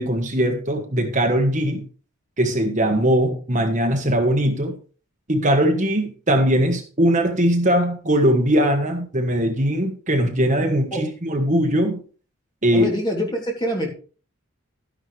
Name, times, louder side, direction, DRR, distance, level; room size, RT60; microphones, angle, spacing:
voice 1, 0.0-1.8 2.4-4.8 5.3-12.0 12.6-12.9, equal, 35° right, 1.4 m, -20 dB
voice 2, 12.7-13.9, equal, 20° left, 2.9 m, -25 dB
13.0 x 10.0 x 3.4 m
head